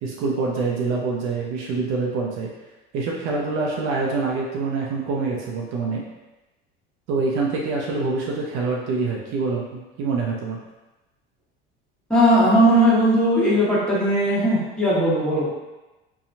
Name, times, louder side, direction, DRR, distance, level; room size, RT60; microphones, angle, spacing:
voice 1, 0.0-2.5 2.9-6.0 7.1-10.6, right 4 dB, 60° right, -2 dB, 0.6 m, -25 dB
voice 2, 12.1-15.5, equal, 5° left, -9 dB, 1.2 m, -18 dB
2.8 x 2.3 x 2.6 m, 1.1 s
hypercardioid pair, 85°, 31 cm